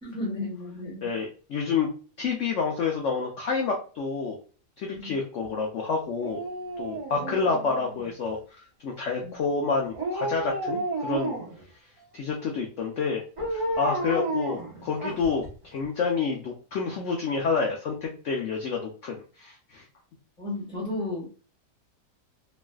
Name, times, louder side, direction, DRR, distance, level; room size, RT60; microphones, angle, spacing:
voice 1, 0.0-1.1 4.9-5.2 7.2-7.3 9.2-9.3 20.4-21.5, left 2 dB, 5° left, -3 dB, 0.7 m, -34 dB
voice 2, 1.0-1.9 2.2-4.4 4.8-6.4 6.8-11.4 12.1-13.2 13.5-19.8, left 5 dB, 70° left, 1 dB, 0.7 m, -29 dB
Dog, 6.2-8.2 9.9-11.6 13.4-15.5 15.8-15.9, right 2 dB, 25° right, 0.7 m, -31 dB
3.1 x 2.4 x 2.2 m, 0.39 s
omnidirectional pair, 1.8 m